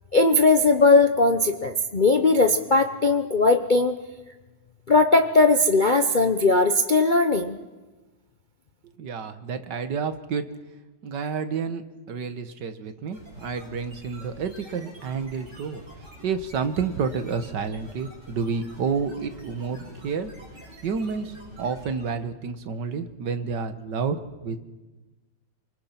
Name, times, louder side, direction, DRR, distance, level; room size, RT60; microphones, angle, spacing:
voice 1, 0.1-4.0 4.9-7.6, left 3 dB, 85° left, 6 dB, 0.4 m, -19 dB
voice 2, 9.0-10.5 11.0-15.8 16.2-20.3 20.8-24.2 24.4-24.6, right 5 dB, 60° right, 9 dB, 1.8 m, -30 dB
sound 1, 13.1-22.3, equal, 30° right, 7.5 m, -46 dB
27.0 x 25.0 x 5.9 m, 1.2 s
omnidirectional pair, 2.3 m